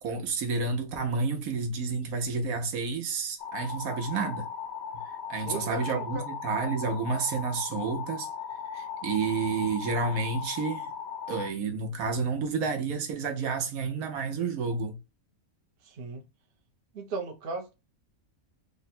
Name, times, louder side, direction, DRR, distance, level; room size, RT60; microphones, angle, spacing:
voice 1, 0.0-4.5 5.1-8.3 8.7-10.9 11.3-15.0, right 4 dB, 75° right, 1.3 m, -30 dB
sound 1, 3.4-11.5, left 7 dB, 85° left, 1.1 m, -38 dB
voice 2, 5.3-6.2 15.8-16.2 16.9-17.7, right 3 dB, 50° right, 0.7 m, -36 dB
3.6 x 2.2 x 4.1 m
omnidirectional pair, 1.5 m